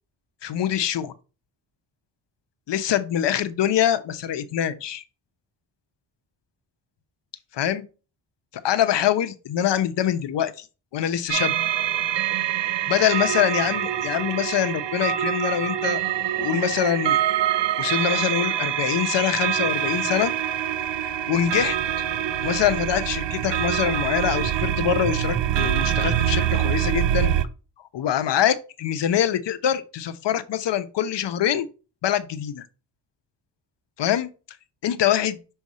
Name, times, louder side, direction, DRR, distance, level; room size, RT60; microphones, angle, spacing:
voice 1, 0.4-1.1 2.7-5.0 7.5-7.8 8.6-10.7 10.9-11.5 12.9-16.0 16.4-17.2 17.8-20.3 21.0-21.8 22.4-27.3 27.9-31.7 32.0-32.7 34.0-34.3 34.8-35.4, left 10 dB, 65° left, 0.9 m, -24 dB
sound 1, 11.3-27.5, right 11 dB, 65° right, 0.7 m, -25 dB
6.4 x 3.5 x 4.1 m
cardioid pair, 75°, 46 cm